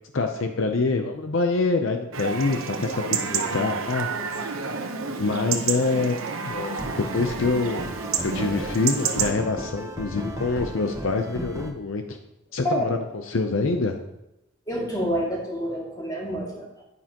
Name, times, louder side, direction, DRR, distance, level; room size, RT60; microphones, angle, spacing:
voice 1, 0.1-4.1 4.4-4.5 5.2-7.9 8.2-12.0 12.5-14.0, left 3 dB, 65° left, 5 dB, 0.6 m, -25 dB
Chatter / Livestock farm animals working animals / Chirp tweet, 2.1-9.3, right 5 dB, 85° right, 0.9 m, -29 dB
sound 1, 6.5-11.7, right 1 dB, 15° right, 0.9 m, -36 dB
voice 2, 14.7-16.8, equal, 20° left, -3 dB, 2.4 m, -28 dB
9.8 x 9.5 x 3.0 m, 0.91 s
head